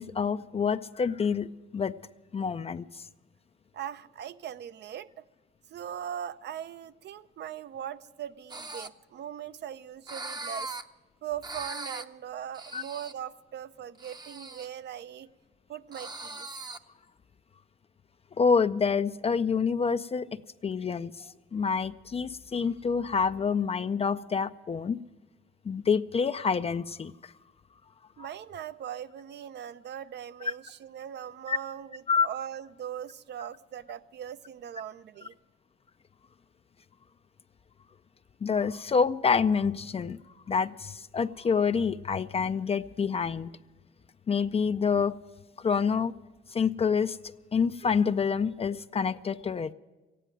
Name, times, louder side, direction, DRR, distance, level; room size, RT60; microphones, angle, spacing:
voice 1, 0.0-1.9 2.3-3.0 12.7-12.8 18.4-25.0 25.7-27.3 31.5-31.6 32.1-32.3 38.4-40.2 40.5-43.5 44.3-45.1 45.6-46.1 46.5-47.2 47.5-49.7, left 5 dB, 30° left, 0.4 m, -27 dB
voice 2, 3.7-5.2 5.7-10.8 11.2-15.3 15.7-16.5 28.2-35.4, right 10 dB, 60° right, 0.6 m, -40 dB
sound 1, 8.5-8.9 10.1-10.8 11.4-12.0 12.5-13.1 14.0-14.7 15.9-16.8, right 2 dB, 20° right, 0.7 m, -39 dB
14.5 x 9.9 x 9.1 m
cardioid pair, 90°, 20 cm